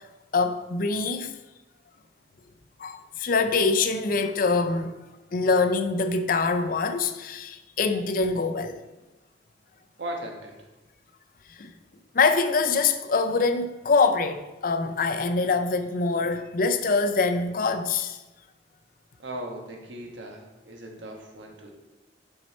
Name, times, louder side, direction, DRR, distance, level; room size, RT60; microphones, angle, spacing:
voice 1, 0.3-1.3 2.8-4.9 5.3-8.8 11.6-11.7 12.1-18.2, left 4 dB, 50° left, 0.5 m, -24 dB
voice 2, 10.0-10.7 19.2-21.7, right 1 dB, 85° right, 1.3 m, -38 dB
6.2 x 5.5 x 4.2 m
head